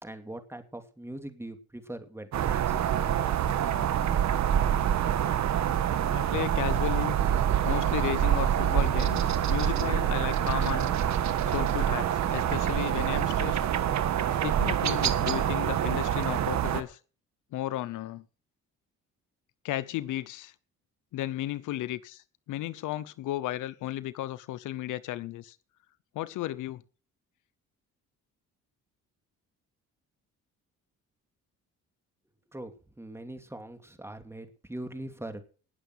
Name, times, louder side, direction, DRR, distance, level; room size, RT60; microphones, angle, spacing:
voice 1, 0.0-2.8 32.5-32.7 33.0-35.4, right 1 dB, 10° right, 2.7 m, -41 dB
sound 1, 2.3-16.8, right 10 dB, 65° right, 1.4 m, -26 dB
voice 2, 6.1-7.2 7.6-10.9 11.4-13.6 14.4-17.0 17.5-18.2 19.6-20.5 21.1-25.6 26.1-26.8, left 14 dB, 85° left, 0.8 m, -34 dB
19.0 x 6.9 x 6.3 m
cardioid pair, 90°, 30 cm